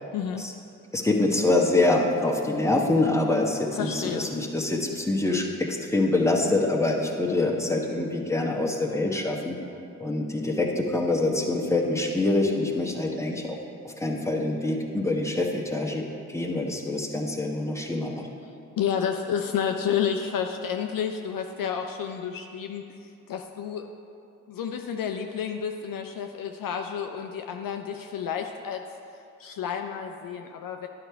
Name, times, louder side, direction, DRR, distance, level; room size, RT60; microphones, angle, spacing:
voice 1, 0.1-0.4 3.7-4.3 18.8-23.9 24.5-28.8 29.4-30.9, left 8 dB, 55° left, 5 dB, 0.6 m, -30 dB
voice 2, 0.9-9.5 10.0-13.6 13.8-18.3, left 2 dB, 5° left, 0 dB, 1.1 m, -25 dB
11.0 x 4.8 x 3.4 m, 2.6 s
hypercardioid pair, 40°, 42 cm